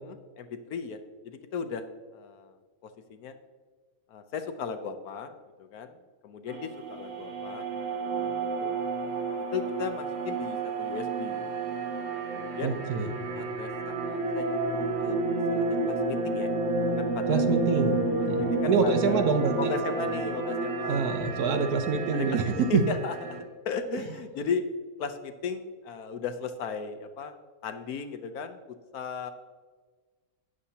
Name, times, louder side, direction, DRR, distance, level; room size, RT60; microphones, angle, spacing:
voice 1, 0.0-1.0 1.2-1.8 2.1-2.6 2.8-3.3 4.1-5.9 6.2-8.8 9.5-11.5 12.3-12.8 13.3-15.2 15.5-16.5 17.0-17.5 18.3-19.3 19.6-21.1 22.1-24.6 25.0-27.3 27.6-29.3, left 6 dB, 70° left, 8 dB, 1.1 m, -36 dB
sound 1, 6.5-23.4, right 3 dB, 50° right, 1.9 m, -30 dB
voice 2, 12.6-13.1 17.3-19.7 20.9-22.4 22.7-22.8 23.9-24.0, right 5 dB, 65° right, 7 dB, 1.3 m, -26 dB
12.5 x 9.7 x 2.8 m, 1.4 s
omnidirectional pair, 1.8 m